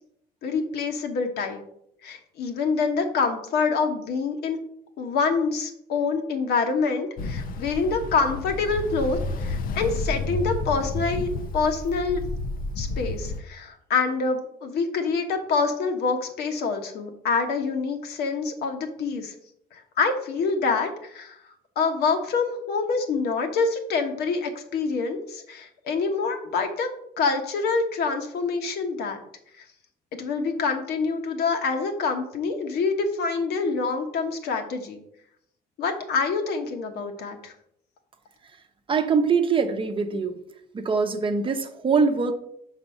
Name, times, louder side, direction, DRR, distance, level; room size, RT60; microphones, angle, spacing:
voice 1, 0.4-1.6 2.0-4.6 5.0-12.2 12.8-19.3 19.7-21.4 21.8-26.9 27.2-29.2 30.2-35.0 35.8-37.5, left 4 dB, 70° left, 5 dB, 1.2 m, -26 dB
Ocean, 7.2-13.4, left 2 dB, 55° left, 0.6 m, -31 dB
voice 2, 38.9-40.3 40.7-42.3, right 5 dB, 30° right, 7 dB, 0.7 m, -23 dB
5.9 x 4.1 x 5.5 m, 0.74 s
cardioid pair, 110°, 17 cm